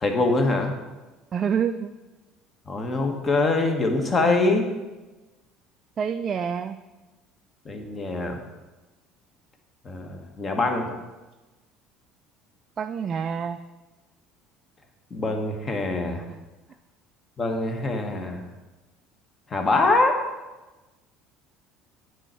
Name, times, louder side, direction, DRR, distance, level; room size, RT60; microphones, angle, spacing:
voice 1, 0.0-0.7 2.7-4.6 7.6-8.4 9.8-10.9 15.1-16.2 17.4-18.4 19.5-20.2, left 2 dB, 35° left, 4 dB, 1.2 m, -24 dB
voice 2, 1.3-1.9 6.0-6.8 12.8-13.6, right 7 dB, 40° right, 8 dB, 0.3 m, -27 dB
8.9 x 4.6 x 4.4 m, 1.2 s
hypercardioid pair, 65°, 0 cm